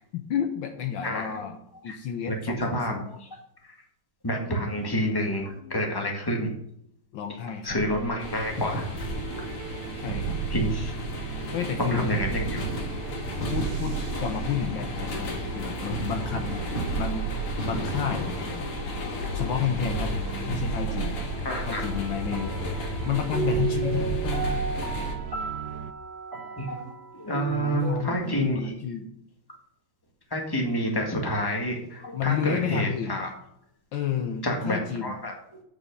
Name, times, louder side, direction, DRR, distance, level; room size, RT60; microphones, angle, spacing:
voice 1, 0.0-1.6 1.8-3.1 4.5-4.9 5.2-5.7 7.1-7.7 10.0-10.4 11.5-12.1 13.5-16.6 17.0-17.3 17.6-18.4 19.3-20.1 20.5-21.2 21.7-22.8 23.1-24.7 27.5-29.1 32.1-33.3 33.9-35.2, left 8 dB, 70° left, 6 dB, 1.4 m, -31 dB
voice 2, 1.0-1.3 1.9-2.0 2.3-3.3 3.6-3.8 4.2-6.5 7.6-9.5 10.5-10.9 11.8-12.6 21.4-21.8 26.6-28.7 30.3-33.3 34.4-35.3, equal, 10° left, 1 dB, 1.7 m, -29 dB
sound 1, 7.7-25.9, right 10 dB, 75° right, 0.9 m, -35 dB
sound 2, 8.2-25.2, left 2 dB, 90° left, 2.6 m, -33 dB
sound 3, 21.7-28.2, right 6 dB, 25° right, 3.0 m, -34 dB
8.3 x 5.8 x 6.6 m, 0.75 s
omnidirectional pair, 2.3 m